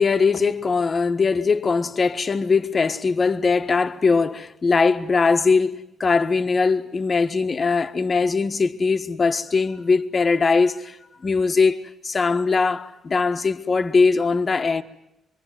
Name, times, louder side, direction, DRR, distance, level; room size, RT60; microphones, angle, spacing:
voice 1, 0.0-11.0 11.2-14.8, left 4 dB, 35° left, 1.5 m, -21 dB
25.5 x 23.5 x 9.4 m
cardioid pair, 90°, 0 cm